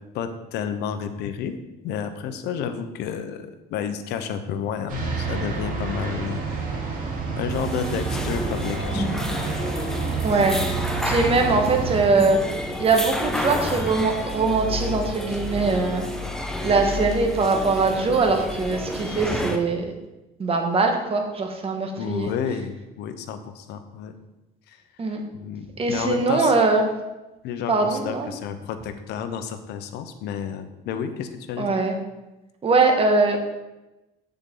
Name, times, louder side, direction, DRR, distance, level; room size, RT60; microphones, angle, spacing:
voice 1, 0.1-1.5 1.8-6.4 7.4-9.1 22.0-24.1 24.7-24.8 25.3-26.5 27.4-31.8, left 7 dB, 85° left, 9 dB, 0.8 m, -30 dB
sound 1, 4.9-12.0, right 4 dB, 55° right, 2.3 m, -29 dB
sound 2, 7.5-19.6, left 1 dB, 5° left, 0.9 m, -30 dB
voice 2, 10.2-10.6 11.0-12.5 12.8-16.1 16.6-19.8 20.4-22.3 25.0-25.2 25.8-26.8 27.7-28.3 31.6-31.9 32.6-33.4, right 3 dB, 35° right, 3 dB, 1.4 m, -21 dB
8.3 x 7.1 x 3.8 m, 1.0 s
cardioid pair, 110°, 17 cm